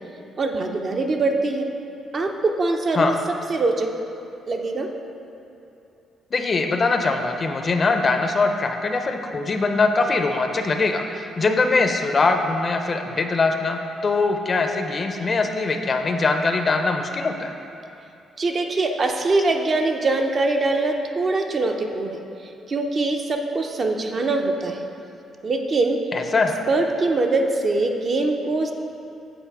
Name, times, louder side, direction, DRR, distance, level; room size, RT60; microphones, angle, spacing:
voice 1, 0.4-1.7 2.1-3.1 3.5-3.9 4.5-4.9 18.4-22.2 22.7-24.9 25.4-26.0 26.7-28.7, right 3 dB, 45° right, 3 dB, 0.6 m, -23 dB
voice 2, 6.3-17.5 26.1-26.5, left 3 dB, 40° left, 5 dB, 0.5 m, -22 dB
7.9 x 4.1 x 4.6 m, 2.8 s
cardioid pair, 90°, 0 cm